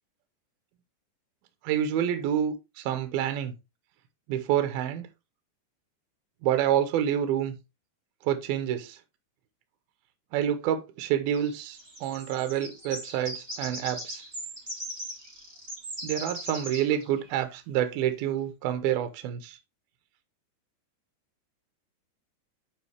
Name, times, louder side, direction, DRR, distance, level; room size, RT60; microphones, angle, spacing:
voice 1, 1.6-3.5 4.3-5.1 6.4-7.5 8.2-9.0 10.3-14.2 16.0-19.6, right 10 dB, 75° right, 2.5 m, -28 dB
sound 1, 11.3-17.3, right 1 dB, 10° right, 2.5 m, -39 dB
8.2 x 5.0 x 3.3 m
omnidirectional pair, 4.9 m